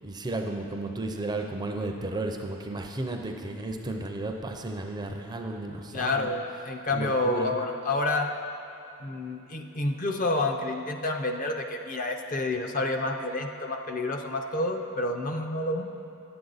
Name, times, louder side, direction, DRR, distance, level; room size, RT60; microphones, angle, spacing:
voice 1, 0.0-6.3 6.9-7.5, right 2 dB, 20° right, 3 dB, 0.4 m, -33 dB
voice 2, 5.9-8.3 9.0-15.8, left 2 dB, 35° left, 3 dB, 0.5 m, -29 dB
10.0 x 7.9 x 4.0 m, 2.8 s
head